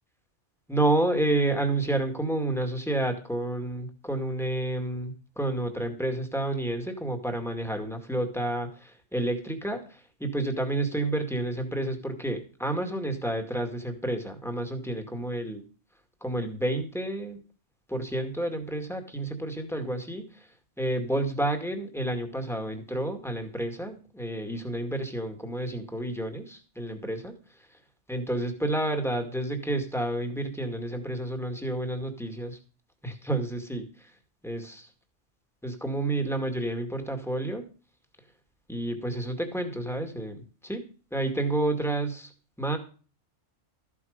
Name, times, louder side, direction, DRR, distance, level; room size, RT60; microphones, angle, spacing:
voice 1, 0.7-15.6 16.2-17.4 17.9-20.3 20.8-27.3 28.1-32.6 33.0-33.9 34.4-34.9 35.6-37.6 38.7-40.4 40.6-40.8 41.1-42.3 42.6-42.8, right 1 dB, ahead, 4 dB, 2.1 m, -30 dB
13.5 x 8.3 x 5.3 m, 0.37 s
omnidirectional pair, 1.3 m